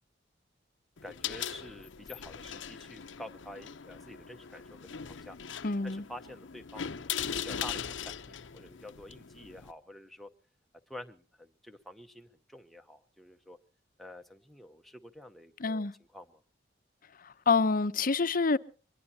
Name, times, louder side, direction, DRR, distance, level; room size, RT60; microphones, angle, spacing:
sound 1, 1.0-9.7, left 8 dB, 85° left, 0.8 m, -40 dB
voice 1, 1.0-4.8 5.1-5.4 5.8-10.3 10.9-13.6 14.0-15.9 16.1-16.4, left 1 dB, ahead, 0.9 m, -48 dB
voice 2, 5.6-6.0 15.6-15.9 17.2-18.6, left 4 dB, 50° left, 0.8 m, -27 dB
23.5 x 21.0 x 2.8 m
head